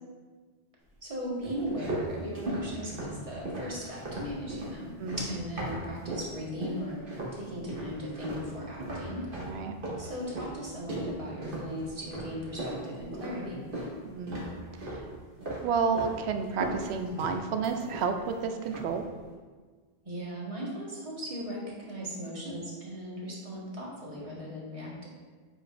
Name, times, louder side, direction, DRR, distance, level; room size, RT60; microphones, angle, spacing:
voice 1, 1.0-9.3 9.9-13.6 20.0-25.1, equal, 30° right, -5 dB, 1.4 m, -38 dB
sound 1, 1.4-6.3 6.6-7.4 7.7-14.0 14.3-15.1 15.4-16.2 16.4-18.3 18.6-19.0, right 1 dB, 55° right, 1.5 m, -37 dB
voice 2, 14.0-14.4 14.9-15.0 15.6-19.0, right 5 dB, 80° right, 6 dB, 0.9 m, -30 dB
7.9 x 5.3 x 2.5 m, 1.4 s
omnidirectional pair, 1.1 m